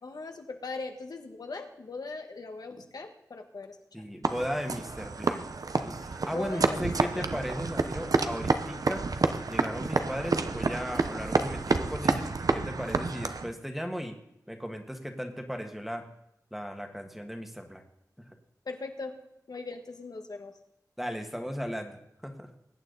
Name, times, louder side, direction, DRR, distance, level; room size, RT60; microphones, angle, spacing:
voice 1, 0.0-3.8 6.3-7.2 18.6-19.1 19.5-20.5, left 3 dB, 70° left, 4 dB, 1.5 m, -40 dB
voice 2, 3.9-5.4 5.8-9.1 9.5-14.2 14.5-16.0 16.5-17.8 21.0-22.5, equal, 5° right, 4 dB, 1.7 m, -36 dB
sound 1, 4.2-13.5, right 3 dB, 60° right, 0.9 m, -29 dB
21.0 x 9.0 x 4.0 m, 0.81 s
wide cardioid pair, 90°, 7 cm